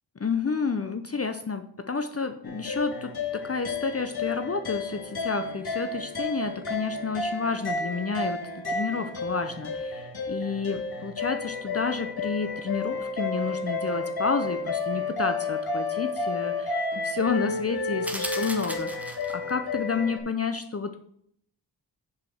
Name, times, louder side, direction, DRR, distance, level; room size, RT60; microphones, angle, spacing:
voice 1, 0.2-8.4 8.7-21.0, left 5 dB, 35° left, 8 dB, 0.6 m, -30 dB
sound 1, 2.4-20.2, left 3 dB, 55° left, 1.7 m, -31 dB
sound 2, 18.0-19.5, equal, 5° right, 1.2 m, -36 dB
7.1 x 4.9 x 6.5 m, 0.67 s
wide cardioid pair, 80°, 44 cm